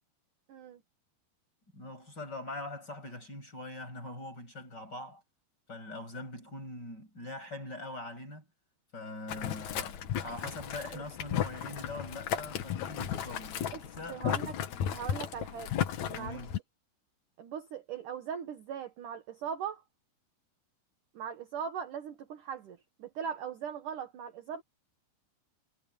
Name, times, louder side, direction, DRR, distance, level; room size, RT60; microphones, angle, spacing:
voice 1, 0.5-0.8 10.9-11.0 13.7-14.5 14.9-15.7 16.1-16.4 17.4-19.8 21.1-24.6, right 7 dB, 60° right, 2.4 m, -40 dB
voice 2, 1.7-5.2 5.7-8.5 8.9-13.6 14.0-14.2 16.1-16.5, left 2 dB, 20° left, 8.3 m, -43 dB
Boiling, 9.3-16.6, left 9 dB, 75° left, 1.7 m, -35 dB
omnidirectional pair, 5.5 m